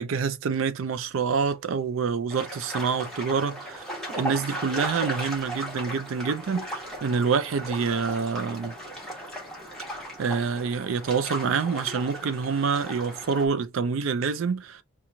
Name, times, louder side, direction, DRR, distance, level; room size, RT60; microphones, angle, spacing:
voice 1, 0.0-3.8 4.2-8.7 10.2-14.8, right 5 dB, 75° right, 0.4 m, -27 dB
sound 1, 2.3-13.5, equal, 5° left, 1.1 m, -36 dB
2.9 x 2.3 x 3.7 m
head